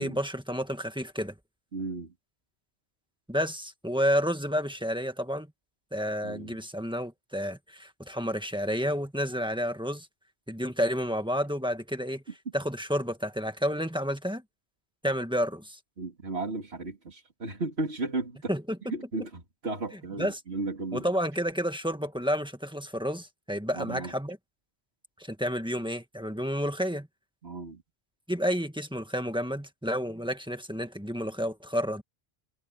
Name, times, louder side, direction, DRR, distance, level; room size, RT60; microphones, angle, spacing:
voice 1, 0.0-1.3 3.3-5.5 5.9-10.1 10.5-12.2 12.5-14.4 15.0-15.8 18.5-18.8 20.2-20.4 20.9-24.4 25.2-27.1 28.3-32.0, equal, 5° right, 1.6 m, -30 dB
voice 2, 1.7-2.1 6.2-6.6 16.0-18.5 18.9-21.1 23.7-24.1 27.4-27.8, right 3 dB, 80° right, 3.2 m, -34 dB
omnidirectional pair, 1.1 m